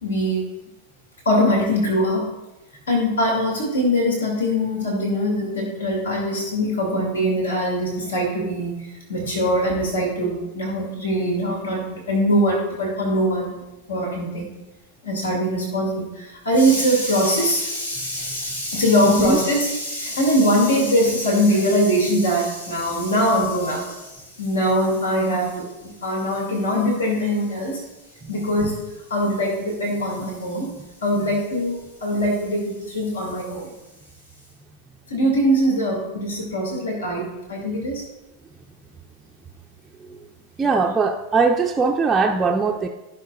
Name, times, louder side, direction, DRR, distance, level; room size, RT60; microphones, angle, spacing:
voice 1, 0.0-0.4 1.3-2.3 2.9-8.8 9.1-13.5 13.9-14.5 15.0-24.1 24.4-25.6 26.0-27.8 28.3-28.7 29.1-30.7 31.0-33.7 35.1-38.0, equal, 70° left, 0 dB, 2.1 m, -22 dB
voice 2, 19.0-19.4 40.1-40.2 40.6-42.9, right 4 dB, 15° right, 0 dB, 0.5 m, -20 dB
16.0 x 5.8 x 2.3 m, 1.0 s
figure-of-eight pair, 90°, 0 cm